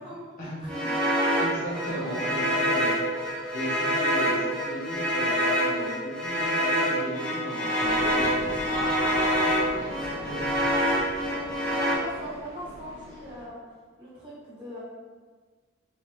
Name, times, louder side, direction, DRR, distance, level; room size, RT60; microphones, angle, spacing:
Cello Song, 0.6-12.0, equal, 5° left, 0.5 m, -26 dB
voice 1, 0.6-1.3 8.7-9.8 11.2-13.6 14.0-14.8, equal, 25° right, -9 dB, 1.3 m, -39 dB
voice 2, 1.3-3.0 3.5-8.5 9.7-10.6, equal, 45° left, -6 dB, 0.8 m, -36 dB
sound 1, 7.8-13.5, right 1 dB, 75° right, 0.6 m, -40 dB
3.2 x 3.2 x 3.0 m, 1.4 s
head